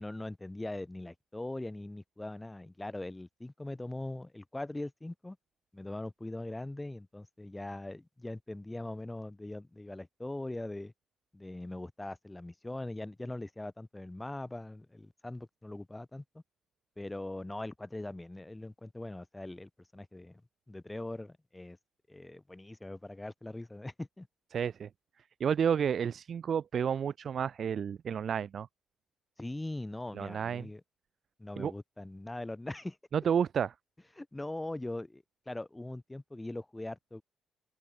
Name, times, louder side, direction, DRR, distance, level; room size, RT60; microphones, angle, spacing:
voice 1, 0.0-5.4 5.7-10.9 11.3-16.4 17.0-20.4 20.7-21.8 22.1-24.3 29.4-30.8 31.4-33.0 34.2-37.2, left 2 dB, 10° left, 7.1 m, -41 dB
voice 2, 24.5-24.9 25.4-28.7 30.2-30.7 31.6-31.7 33.1-33.7, right 7 dB, 55° right, 0.6 m, -31 dB
open air
cardioid pair, 90°, 0 cm